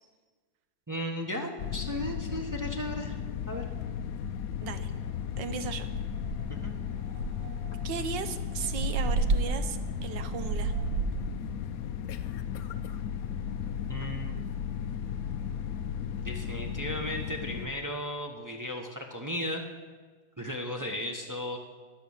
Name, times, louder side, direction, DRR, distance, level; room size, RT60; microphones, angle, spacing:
voice 1, 0.9-3.2 3.5-3.6 6.5-6.7 13.9-14.4 16.2-19.6 20.4-21.6, left 1 dB, 30° right, 1 dB, 0.3 m, -35 dB
sound 1, 1.6-17.7, left 8 dB, 85° left, 0.7 m, -35 dB
sound 2, 4.5-4.6 4.9-5.2 5.5-5.6 5.9-6.6 7.1-11.3, right 4 dB, 85° right, 1.6 m, -31 dB
voice 2, 5.4-5.9 7.8-10.7, right 7 dB, 70° right, 10 dB, 1.4 m, -36 dB
13.0 x 9.8 x 7.2 m, 1.4 s
omnidirectional pair, 2.2 m